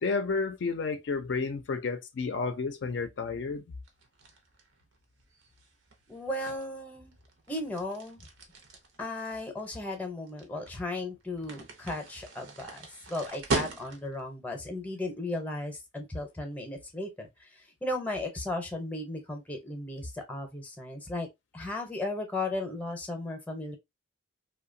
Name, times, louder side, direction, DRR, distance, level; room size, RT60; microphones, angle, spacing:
voice 1, 0.0-3.6, left 4 dB, 60° left, 0.4 m, -31 dB
sound 1, 3.8-14.3, right 3 dB, 85° right, 0.7 m, -40 dB
voice 2, 6.1-7.1 7.5-8.2 9.0-21.3 21.5-23.8, left 2 dB, 10° left, 0.6 m, -36 dB
2.7 x 2.2 x 2.5 m
head